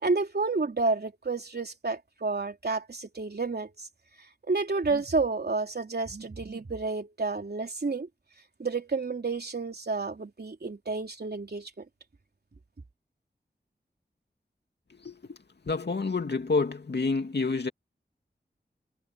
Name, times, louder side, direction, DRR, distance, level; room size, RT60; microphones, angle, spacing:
voice 1, 0.0-3.9 4.5-8.1 8.6-11.8, right 3 dB, 65° right, 3.5 m, -30 dB
voice 2, 15.0-15.4 15.7-17.7, left 4 dB, 70° left, 2.5 m, -28 dB
wide cardioid pair, 50°, 18 cm